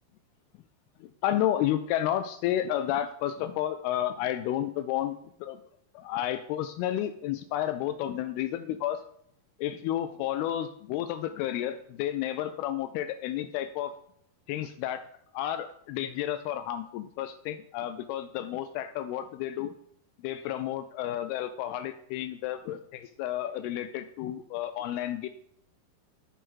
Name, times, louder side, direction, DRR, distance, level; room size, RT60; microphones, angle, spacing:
voice 1, 1.0-5.6 5.9-9.0 9.6-14.0 14.5-15.1 15.3-19.7 20.2-25.3, left 12 dB, 85° left, 9 dB, 2.4 m, -31 dB
11.5 x 4.8 x 6.2 m, 0.71 s
omnidirectional pair, 4.5 m